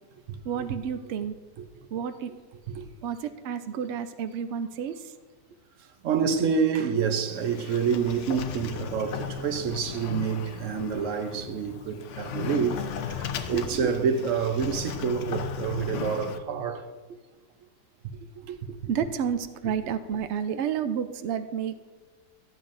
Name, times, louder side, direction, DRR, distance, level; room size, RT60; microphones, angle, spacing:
voice 1, 0.4-1.4 1.9-2.3 3.0-5.1 11.3-11.4 13.5-13.9 17.1-17.2 18.7-21.7, right 8 dB, 90° right, 0.6 m, -30 dB
voice 2, 6.0-16.8 18.4-18.6, right 6 dB, 60° right, 0.9 m, -28 dB
Sliding door, 7.0-16.4, left 8 dB, 70° left, 0.7 m, -36 dB
13.5 x 8.6 x 2.6 m
omnidirectional pair, 1.8 m